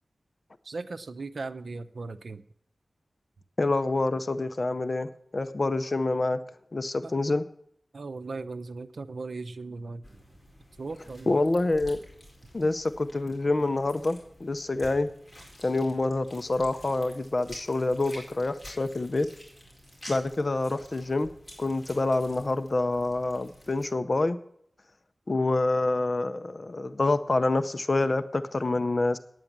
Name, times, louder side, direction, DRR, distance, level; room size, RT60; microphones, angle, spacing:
voice 1, 0.6-2.4 7.0-7.1 7.9-10.2 10.8-11.4, right 3 dB, 75° right, 11 dB, 0.7 m, -38 dB
voice 2, 3.6-6.4 6.7-7.4 11.3-12.0 12.5-15.1 15.6-19.3 20.1-21.3 21.6-24.4 25.3-29.2, left 2 dB, 45° left, 13 dB, 0.6 m, -27 dB
sound 1, 10.0-23.9, equal, 20° left, 4.4 m, -50 dB
9.3 x 9.1 x 7.3 m, 0.68 s
wide cardioid pair, 85°, 0 cm